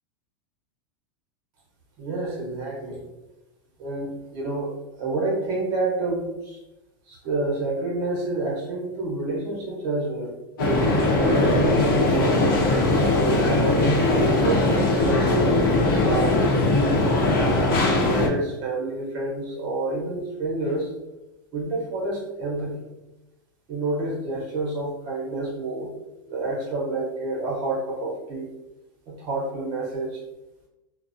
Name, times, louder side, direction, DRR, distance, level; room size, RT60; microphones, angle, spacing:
voice 1, 2.0-3.0 3.8-6.6 7.1-10.3 11.0-13.5 14.0-17.0 17.9-20.9 21.5-22.7 23.7-25.9 26.3-28.5 29.1-30.2, right 2 dB, 40° right, -3 dB, 0.7 m, -29 dB
sound 1, 10.6-18.3, left 2 dB, 80° left, 0.7 m, -20 dB
2.5 x 2.0 x 2.5 m, 0.98 s
supercardioid pair, 155°, 12 cm